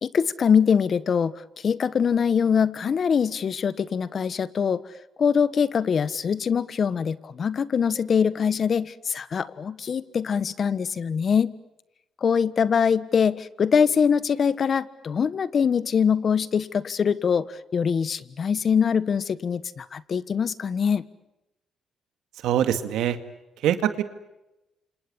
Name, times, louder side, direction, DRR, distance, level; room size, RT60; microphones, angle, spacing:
voice 1, 0.0-4.8 5.2-11.5 12.2-21.0, left 6 dB, 50° left, 16 dB, 1.4 m, -23 dB
voice 2, 22.4-23.2 23.6-24.0, right 10 dB, 85° right, 10 dB, 2.2 m, -23 dB
29.0 x 27.0 x 7.1 m, 0.96 s
cardioid pair, 90°, 0 cm